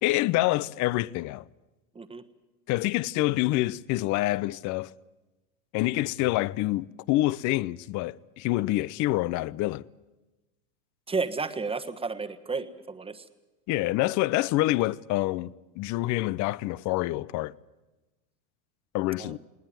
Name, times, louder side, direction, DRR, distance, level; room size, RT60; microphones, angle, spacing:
voice 1, 0.0-1.4 2.7-4.9 5.7-9.9 13.7-17.5 18.9-19.4, left 17 dB, 40° left, 0.7 m, -27 dB
voice 2, 11.1-13.2 19.2-19.4, right 4 dB, 10° right, 1.3 m, -32 dB
20.0 x 18.5 x 9.3 m
supercardioid pair, 120°, 46 cm